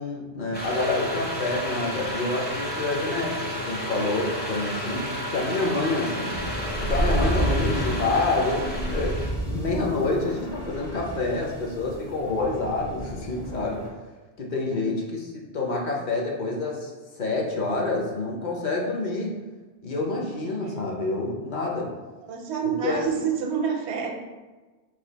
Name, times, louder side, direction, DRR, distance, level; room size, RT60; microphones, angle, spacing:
voice 1, 0.0-6.3 6.8-13.8 14.4-16.9 17.2-19.4 19.8-21.9 22.6-23.1, left 3 dB, 50° left, -1 dB, 0.7 m, -28 dB
sound 1, 0.5-9.3, equal, 15° left, 0.4 m, -32 dB
sound 2, 6.3-13.9, right 1 dB, 65° left, 1.3 m, -30 dB
voice 2, 22.2-24.1, right 6 dB, 75° right, 2 dB, 0.9 m, -28 dB
3.3 x 2.4 x 3.9 m, 1.2 s
omnidirectional pair, 1.1 m